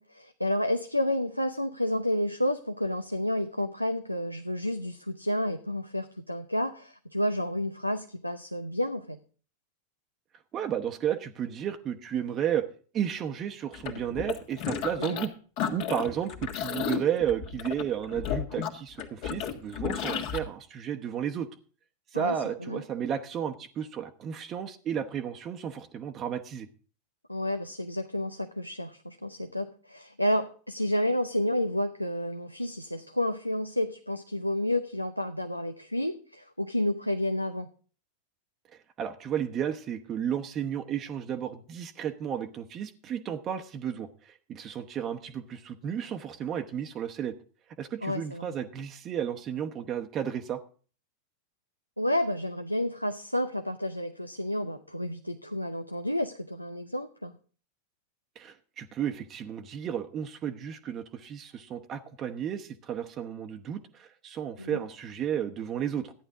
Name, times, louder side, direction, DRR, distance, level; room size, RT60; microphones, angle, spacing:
voice 1, 0.0-9.2 15.0-15.2 22.1-22.8 27.3-37.7 48.0-48.5 52.0-57.3 64.6-64.8, left 1 dB, 90° left, 8 dB, 0.7 m, -30 dB
voice 2, 10.5-12.7 12.9-15.3 15.7-21.5 22.1-26.7 39.0-47.3 47.8-50.6 58.4-66.1, right 9 dB, 30° right, 5 dB, 0.9 m, -33 dB
sound 1, 13.7-15.3 15.6-20.4, left 8 dB, 45° left, 1.7 m, -33 dB
14.5 x 10.0 x 3.7 m, 0.41 s
figure-of-eight pair, 90°, 0 cm